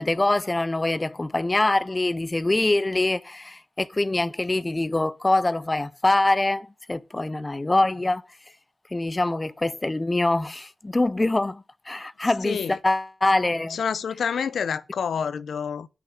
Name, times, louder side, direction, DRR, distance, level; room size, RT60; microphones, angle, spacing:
voice 1, 0.0-8.2 8.9-13.8, left 2 dB, 25° left, 0.6 m, -24 dB
voice 2, 12.4-12.8 13.7-15.9, left 7 dB, 90° left, 0.5 m, -28 dB
8.6 x 6.1 x 5.5 m
cardioid pair, 60°, 0 cm